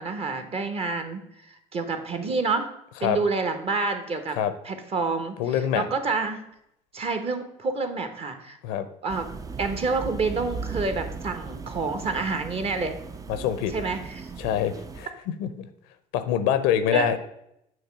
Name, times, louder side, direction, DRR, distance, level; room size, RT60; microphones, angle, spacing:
voice 1, 0.0-2.7 3.0-4.4 4.6-5.4 5.7-6.4 6.9-8.6 9.0-9.3 9.6-13.0 13.7-14.3 16.9-17.1, right 4 dB, 35° right, 7 dB, 1.1 m, -28 dB
voice 2, 5.4-5.9 8.6-8.9 13.3-13.7 14.4-15.1 15.4-15.7 16.1-17.2, left 9 dB, 80° left, 11 dB, 0.6 m, -25 dB
sound 1, 9.1-15.1, right 4 dB, 20° right, 0.4 m, -37 dB
7.1 x 3.2 x 5.9 m, 0.78 s
supercardioid pair, 80°, 17 cm